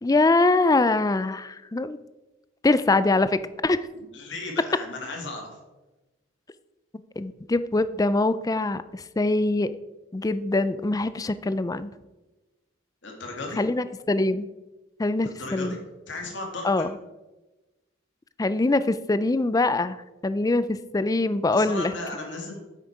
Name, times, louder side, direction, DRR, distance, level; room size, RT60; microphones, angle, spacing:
voice 1, 0.0-2.0 2.6-3.9 7.2-9.8 10.1-11.9 13.6-14.5 15.0-15.8 16.6-16.9 18.4-20.0 20.2-21.9, left 2 dB, 20° left, 14 dB, 0.4 m, -23 dB
voice 2, 3.9-5.6 13.0-13.6 15.2-15.8 16.1-16.8 21.5-22.6, left 2 dB, 65° left, 1 dB, 2.4 m, -35 dB
9.6 x 8.1 x 4.8 m, 1.1 s
head